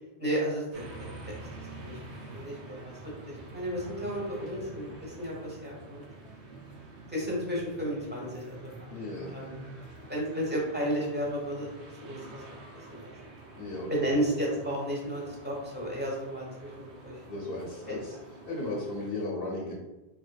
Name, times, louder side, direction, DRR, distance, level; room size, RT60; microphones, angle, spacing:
voice 1, 0.2-1.0 1.7-6.0 7.1-8.7 9.3-9.6 10.1-11.7 12.0-13.1 13.9-17.2 17.9-18.0, equal, 10° right, -4 dB, 1.1 m, -33 dB
sound 1, 0.7-19.1, right 2 dB, 85° right, 1.1 m, -47 dB
voice 2, 8.9-9.3 13.5-14.1 17.2-18.1 18.5-19.7, left 2 dB, 60° left, -3 dB, 0.9 m, -35 dB
4.2 x 3.2 x 2.3 m, 1.1 s
omnidirectional pair, 1.1 m